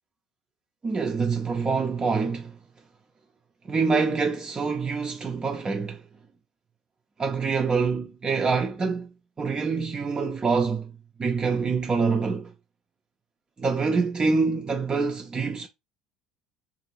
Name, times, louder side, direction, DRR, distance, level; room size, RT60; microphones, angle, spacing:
voice 1, 0.8-2.6 3.7-6.0 7.2-9.1 9.4-10.9 11.2-12.5 13.6-15.7, right 4 dB, 25° right, 0.5 m, -25 dB
2.6 x 2.4 x 3.0 m
figure-of-eight pair, 60°, 3 cm